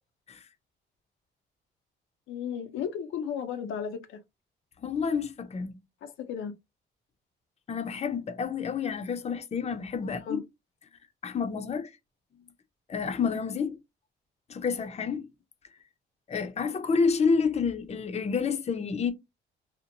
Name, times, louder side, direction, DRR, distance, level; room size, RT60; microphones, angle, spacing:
voice 1, 2.3-4.2 6.0-6.5 10.2-10.4, left 7 dB, 85° left, 0.6 m, -34 dB
voice 2, 4.8-5.8 7.7-10.4 11.2-11.9 12.9-13.8 14.5-15.3 16.3-19.1, left 5 dB, 35° left, 0.5 m, -29 dB
2.8 x 2.1 x 2.5 m
cardioid pair, 90°, 20 cm